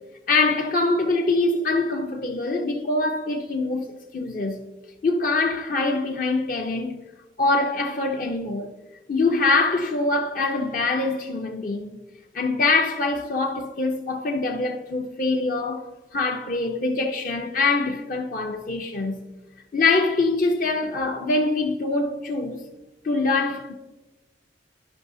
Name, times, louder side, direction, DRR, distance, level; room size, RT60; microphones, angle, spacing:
voice 1, 0.3-4.6 5.0-6.9 7.4-8.7 9.1-12.0 12.3-19.2 19.7-22.6 23.0-23.7, left 3 dB, 45° left, 0.5 m, -24 dB
12.0 x 5.4 x 2.6 m
head